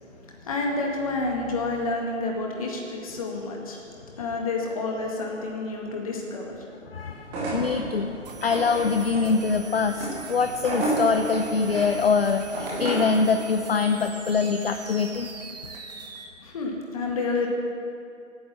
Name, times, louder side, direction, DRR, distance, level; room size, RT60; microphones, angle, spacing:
voice 1, 0.0-3.8 4.2-6.6 16.4-17.5, left 3 dB, 25° left, 0 dB, 2.1 m, -29 dB
voice 2, 6.9-15.3, left 5 dB, 50° left, 7 dB, 0.7 m, -24 dB
sound 1, 7.2-13.2, right 2 dB, 5° right, 0.9 m, -32 dB
sound 2, 8.2-16.2, right 4 dB, 30° right, 1.4 m, -42 dB
15.0 x 9.5 x 7.5 m, 2.6 s
figure-of-eight pair, 150°, 39 cm